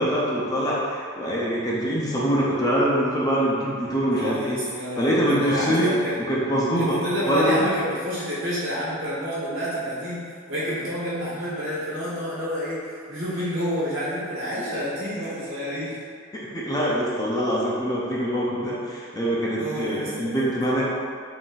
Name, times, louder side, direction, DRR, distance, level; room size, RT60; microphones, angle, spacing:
voice 1, 0.0-4.6 5.0-5.9 6.3-7.6 16.3-20.9, equal, 20° left, -6 dB, 0.5 m, -24 dB
voice 2, 4.1-6.1 6.8-10.2 10.5-15.9 19.6-20.5, equal, 65° right, -9 dB, 1.4 m, -29 dB
3.9 x 3.8 x 2.4 m, 2.1 s
head